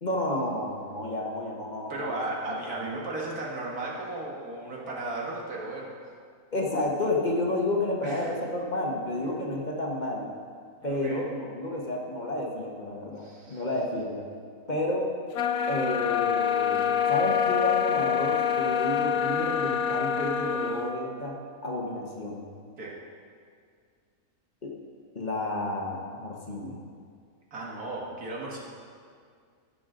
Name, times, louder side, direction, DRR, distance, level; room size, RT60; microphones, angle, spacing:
voice 1, 0.0-2.2 2.5-2.6 6.5-10.3 10.8-14.2 14.7-15.1 15.7-21.3 21.6-22.4 24.6-24.7 25.1-26.8, left 1 dB, 30° left, -2 dB, 1.3 m, -31 dB
voice 2, 1.9-5.9 8.0-8.3 10.8-11.2 13.2-13.6 22.8-23.0 27.5-28.6, right 2 dB, 80° right, -3 dB, 2.2 m, -35 dB
sound 1, 15.3-20.9, left 8 dB, 80° left, 1.1 m, -26 dB
15.0 x 6.8 x 3.8 m, 2.1 s
omnidirectional pair, 1.6 m